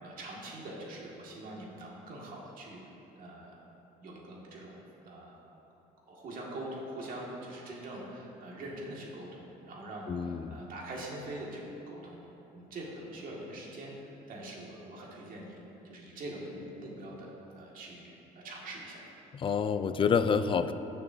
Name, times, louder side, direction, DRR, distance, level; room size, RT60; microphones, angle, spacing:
voice 1, 0.0-2.8 3.2-3.6 4.0-4.7 5.0-5.4 6.1-12.2 12.5-15.6 15.8-18.1 18.4-19.0, right 1 dB, 55° right, -3 dB, 2.1 m, -43 dB
voice 2, 10.1-10.6 19.3-20.7, left 6 dB, 30° left, 11 dB, 0.4 m, -28 dB
15.5 x 6.7 x 2.8 m, 3.0 s
cardioid pair, 110°, 17 cm